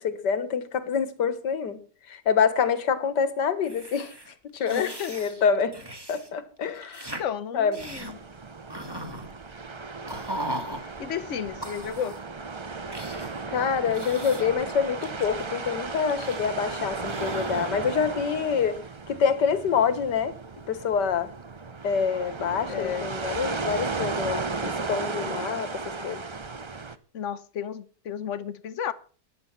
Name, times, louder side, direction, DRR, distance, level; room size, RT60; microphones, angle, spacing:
voice 1, 0.0-1.8 2.1-4.1 4.5-5.8 6.1-7.1 7.5-7.8 13.5-18.8 19.1-20.4 20.7-21.3 21.8-26.2, left 6 dB, 80° left, 14 dB, 1.9 m, -26 dB
sound 1, 3.6-6.3 6.6-7.2 7.7-8.1 8.7-9.3 10.1-10.8 11.6-12.3 12.9-13.4 13.9-14.6 15.0-16.7 17.0-17.9, right 1 dB, 15° right, 1.9 m, -39 dB
voice 2, 4.7-5.1 7.2-8.2 10.8-12.2 22.7-23.0 27.1-28.9, left 9 dB, 50° left, 16 dB, 1.1 m, -32 dB
sound 2, 7.8-27.0, right 4 dB, 45° right, 0.3 m, -35 dB
14.5 x 10.5 x 5.8 m, 0.41 s
omnidirectional pair, 1.8 m